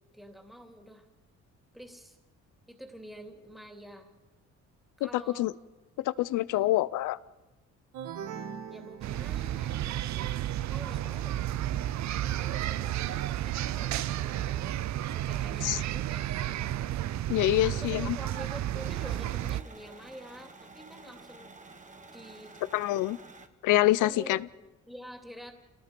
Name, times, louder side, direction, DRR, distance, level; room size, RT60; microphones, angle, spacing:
voice 1, 0.1-1.1 1.7-2.2 2.7-4.1 5.0-5.5 6.5-6.9 8.7-9.8 10.7-11.4 12.2-16.8 17.5-21.5 22.1-22.7 24.0-25.5, equal, ahead, 4 dB, 2.8 m, -47 dB
voice 2, 6.0-7.2 15.6-15.8 17.3-18.2 22.7-23.2 23.6-24.4, left 16 dB, 90° left, 18 dB, 0.7 m, -26 dB
sound 1, 7.9-9.8, right 8 dB, 85° right, 1.8 m, -41 dB
sound 2, 9.0-19.6, right 13 dB, 65° right, 0.6 m, -32 dB
sound 3, 18.7-23.5, right 3 dB, 25° right, 1.6 m, -51 dB
27.0 x 18.5 x 5.3 m, 1.1 s
cardioid pair, 90°, 30 cm